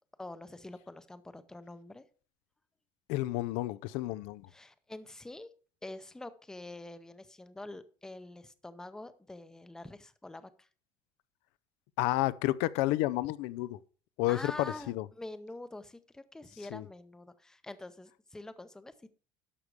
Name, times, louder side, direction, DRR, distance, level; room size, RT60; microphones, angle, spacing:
voice 1, 0.2-2.0 4.5-5.5 5.8-10.7 14.3-19.1, left 2 dB, 5° left, 0.6 m, -46 dB
voice 2, 3.1-4.5 12.0-13.8 14.2-15.0 16.7-16.8, left 17 dB, 90° left, 0.5 m, -31 dB
11.0 x 6.6 x 4.8 m
cardioid pair, 165°, 10 cm